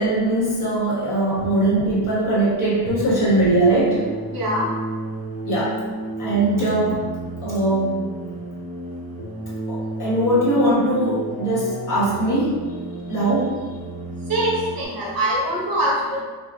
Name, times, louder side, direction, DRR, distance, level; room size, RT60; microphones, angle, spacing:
voice 1, 0.0-4.0 5.4-5.8 6.2-7.1 7.4-8.0 9.7-12.5 13.1-13.6, right 1 dB, 45° left, -7 dB, 1.4 m, -20 dB
sound 1, 3.6-14.8, right 1 dB, 15° left, 0.9 m, -32 dB
voice 2, 4.3-4.7 14.3-16.2, right 1 dB, 50° right, -5 dB, 1.1 m, -23 dB
4.7 x 2.5 x 2.4 m, 1.4 s
cardioid pair, 150°, 45 cm